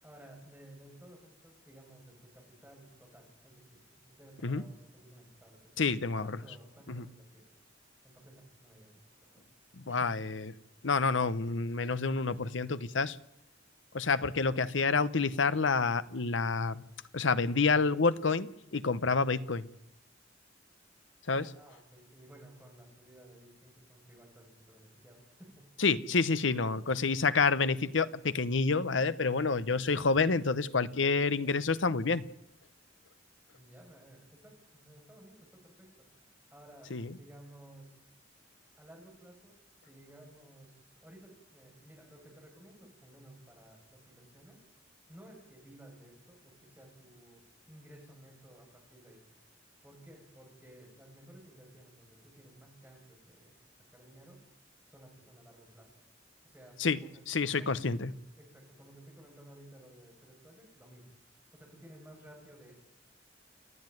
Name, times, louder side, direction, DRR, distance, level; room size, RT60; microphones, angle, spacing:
voice 1, 0.0-5.9 6.2-7.5 8.0-8.9 9.2-9.4 9.9-10.3 21.3-25.7 33.5-38.0 38.8-44.6 45.1-49.2 49.8-53.5 53.9-54.4 54.9-55.9 56.4-58.0 58.3-62.8, right 1 dB, 10° right, 0 dB, 7.0 m, -56 dB
voice 2, 5.8-6.4 6.9-7.0 9.8-10.5 10.8-13.2 13.9-16.8 17.1-19.7 21.3-21.5 25.8-32.2 36.9-37.2 56.8-57.0 57.3-58.1, left 4 dB, 85° left, 14 dB, 1.0 m, -28 dB
29.0 x 9.9 x 9.3 m, 0.79 s
head